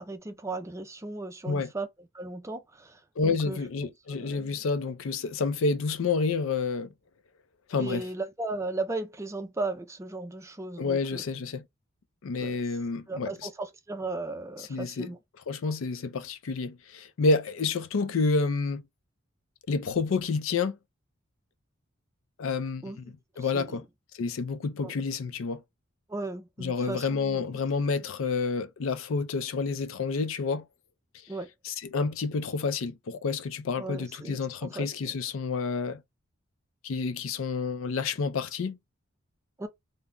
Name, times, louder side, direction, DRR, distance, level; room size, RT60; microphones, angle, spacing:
voice 1, 0.0-1.9 2.1-3.6 4.1-4.5 7.8-11.2 12.4-12.6 13.1-15.2 22.8-23.8 24.8-24.9 26.1-27.6 31.3-31.5 33.8-35.2 39.6-39.7, right 2 dB, 15° right, 0.4 m, -36 dB
voice 2, 3.2-6.9 7.7-8.1 10.8-11.6 12.2-13.3 14.6-15.1 15.5-18.8 19.7-20.8 22.4-23.8 24.2-25.6 26.6-30.6 31.6-36.0 36.8-38.8, left 4 dB, 75° left, 0.4 m, -29 dB
2.3 x 2.1 x 3.6 m
head